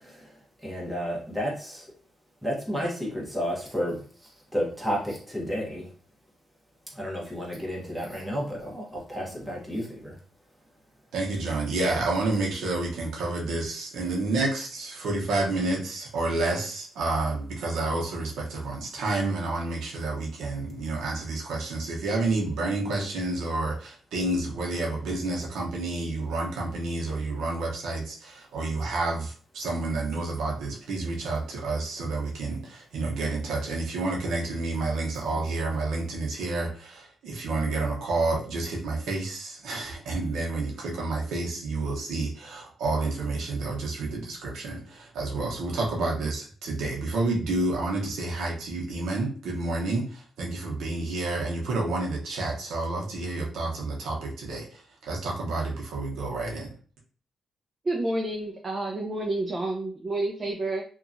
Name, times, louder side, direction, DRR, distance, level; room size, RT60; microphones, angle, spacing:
voice 1, 0.6-1.8 2.4-4.0 4.5-5.9 7.0-10.1, equal, 5° right, -4 dB, 1.0 m, -31 dB
voice 2, 11.1-56.7, right 2 dB, 85° right, -2 dB, 0.8 m, -29 dB
voice 3, 57.8-60.8, right 2 dB, 30° right, 0 dB, 0.4 m, -29 dB
2.8 x 2.3 x 2.5 m, 0.43 s
cardioid pair, 100°, 0 cm